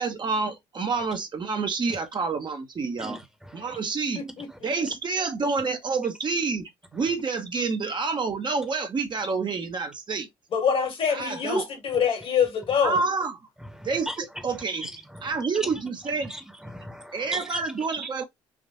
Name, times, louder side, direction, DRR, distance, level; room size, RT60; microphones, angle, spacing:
voice 1, 0.0-3.2 3.5-4.2 4.6-10.3 11.1-11.7 12.8-13.4 13.8-14.9 15.2-16.3 17.1-18.2, right 4 dB, 45° right, 0.9 m, -28 dB
voice 2, 3.0-3.8 13.7-14.2 14.8-15.7 16.3-17.9, equal, 5° right, 1.0 m, -38 dB
voice 3, 4.1-4.7 10.5-13.0, left 6 dB, 60° left, 1.6 m, -25 dB
3.6 x 2.6 x 2.4 m
supercardioid pair, 60°, 11 cm